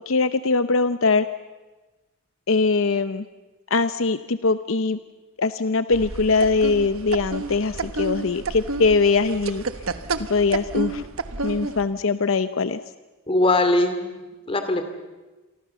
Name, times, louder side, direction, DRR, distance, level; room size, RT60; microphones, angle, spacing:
voice 1, 0.1-1.3 2.5-3.2 3.7-5.0 5.4-9.6 10.2-11.0 11.4-12.8, left 4 dB, 70° left, 12 dB, 0.7 m, -21 dB
sound 1, 5.9-11.9, right 3 dB, 85° right, 1.3 m, -30 dB
voice 2, 13.3-14.2 14.5-14.8, left 2 dB, 25° left, 8 dB, 2.6 m, -20 dB
28.5 x 24.0 x 7.0 m, 1.2 s
head